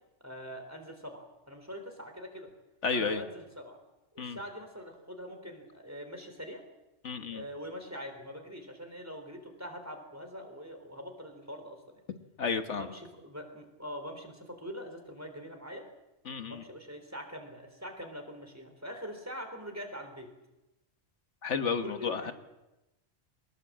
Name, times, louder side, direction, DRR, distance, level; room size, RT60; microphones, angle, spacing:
voice 1, 0.2-2.5 2.9-3.8 4.1-6.6 7.3-11.8 12.7-15.8 16.5-20.3 21.8-22.3, equal, 15° right, 5 dB, 3.7 m, -43 dB
voice 2, 2.8-3.2 4.2-4.4 7.0-7.4 12.4-12.9 16.3-16.6 21.4-22.3, left 5 dB, 80° left, 8 dB, 1.7 m, -32 dB
23.0 x 20.0 x 7.5 m, 0.98 s
omnidirectional pair, 1.2 m